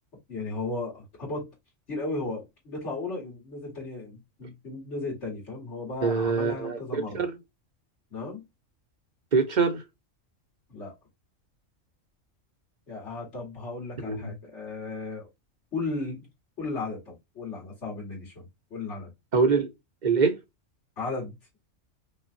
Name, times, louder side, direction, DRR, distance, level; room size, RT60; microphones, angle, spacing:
voice 1, 0.3-1.5 1.9-7.2 8.1-8.4 10.7-10.9 12.9-15.3 15.7-16.3 16.6-18.4 18.7-19.1 21.0-21.3, left 3 dB, 65° left, 2.4 m, -35 dB
voice 2, 6.0-7.4 9.3-9.8 14.0-14.3 19.3-19.7 20.0-20.4, right 5 dB, 40° right, 1.0 m, -24 dB
5.4 x 2.4 x 2.6 m
omnidirectional pair, 1.3 m